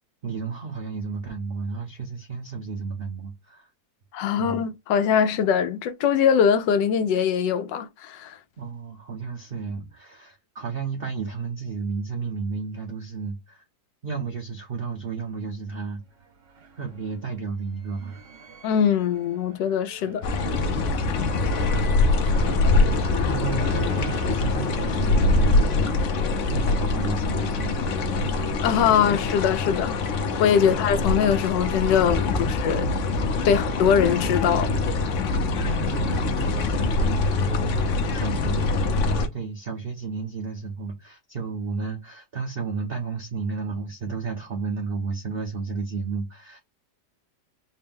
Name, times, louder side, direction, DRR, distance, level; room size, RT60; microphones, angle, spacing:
voice 1, 0.2-3.7 4.4-4.6 8.6-13.6 14.0-16.0 16.8-18.2 20.0-20.2 21.7-22.1 23.3-27.9 28.2-28.4 30.6-30.8 33.4-33.6 35.5-46.6, right 4 dB, 45° right, 0.8 m, -33 dB
voice 2, 4.1-8.4 18.6-20.2 23.2-23.3 23.6-23.7 28.6-30.1 30.4-32.9 33.4-34.8, left 8 dB, 85° left, 1.3 m, -22 dB
sound 1, 15.9-29.6, right 4 dB, 85° right, 2.2 m, -41 dB
sound 2, 20.2-39.3, left 3 dB, 60° left, 0.9 m, -24 dB
4.3 x 2.1 x 3.5 m
omnidirectional pair, 1.9 m